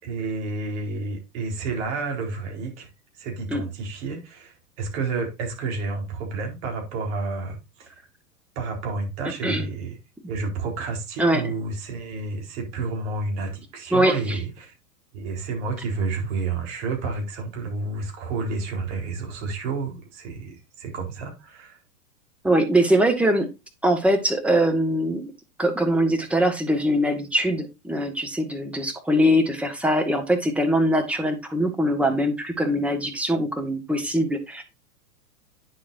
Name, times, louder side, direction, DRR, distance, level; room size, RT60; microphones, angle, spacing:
voice 1, 0.0-2.9 3.2-7.9 8.6-10.0 10.3-14.7 15.1-21.8, right 3 dB, 45° right, 4.2 m, -30 dB
voice 2, 13.9-14.4 22.4-23.5 23.8-25.3 25.6-34.6, equal, 5° right, 1.5 m, -22 dB
9.8 x 7.2 x 2.6 m
hypercardioid pair, 110°, 46 cm